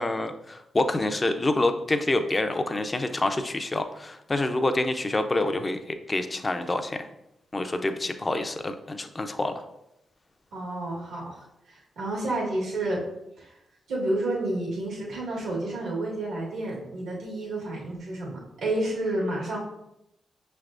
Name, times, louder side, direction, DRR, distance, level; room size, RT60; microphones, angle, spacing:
voice 1, 0.0-7.1 7.5-9.6, left 2 dB, 30° left, 8 dB, 0.5 m, -27 dB
voice 2, 10.5-13.0 13.4-13.5 13.9-19.6, right 2 dB, 80° right, -3 dB, 1.4 m, -30 dB
5.6 x 3.4 x 2.5 m, 0.86 s
supercardioid pair, 55°, 0 cm